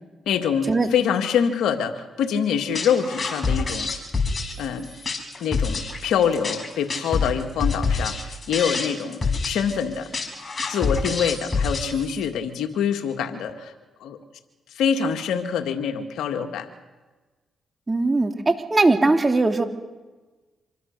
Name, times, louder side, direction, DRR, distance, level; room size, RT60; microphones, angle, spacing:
voice 1, 0.3-3.9 4.6-4.9 5.4-10.1 10.7-13.7 14.0-14.2 14.8-16.7, left 7 dB, 80° left, 6 dB, 2.0 m, -25 dB
sound 1, 2.7-12.3, left 4 dB, 40° left, 5.7 m, -27 dB
voice 2, 17.9-19.6, right 2 dB, 30° right, 5 dB, 3.0 m, -20 dB
26.0 x 22.5 x 6.7 m, 1.2 s
supercardioid pair, 55°, 0 cm